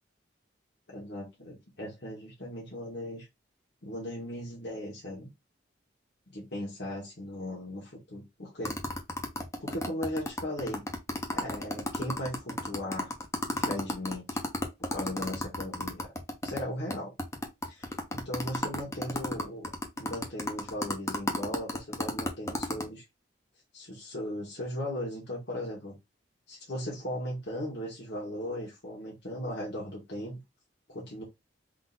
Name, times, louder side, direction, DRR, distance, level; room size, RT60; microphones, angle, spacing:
voice 1, 0.9-3.3 3.8-5.3 6.3-8.8 9.6-10.8 11.3-13.1 13.5-14.4 14.9-16.1 16.4-17.1 17.6-19.7 20.0-23.0 23.7-25.9 26.5-30.4 30.9-31.2, left 1 dB, 65° left, 1.4 m, -37 dB
sound 1, 8.6-16.6 16.9-17.0 17.2-22.8, left 1 dB, 15° left, 0.7 m, -32 dB
3.8 x 2.6 x 3.9 m
head